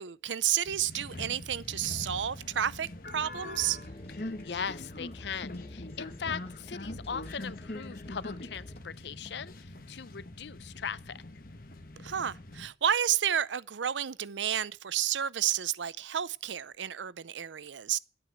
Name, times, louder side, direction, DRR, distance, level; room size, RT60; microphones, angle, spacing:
voice 1, 0.0-3.8 12.0-18.0, right 10 dB, 85° right, 0.6 m, -31 dB
sound 1, 0.6-12.7, left 1 dB, 50° left, 1.3 m, -43 dB
sound 2, 3.6-8.8, left 1 dB, 35° left, 0.9 m, -50 dB
voice 2, 4.4-9.5 9.9-11.2, left 6 dB, 70° left, 0.6 m, -39 dB
12.0 x 8.9 x 8.0 m
head